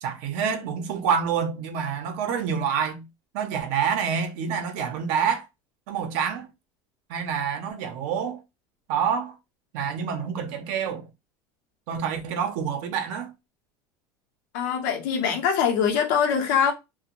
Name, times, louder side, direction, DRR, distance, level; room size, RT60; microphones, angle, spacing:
voice 1, 0.0-3.0 3.3-5.5 5.9-6.5 7.1-8.4 8.9-9.3 9.7-11.0 11.9-13.3, right 7 dB, 70° right, 0.6 m, -27 dB
voice 2, 14.5-16.7, left 7 dB, 80° left, 0.7 m, -23 dB
2.4 x 2.1 x 2.8 m
cardioid pair, 140°, 10 cm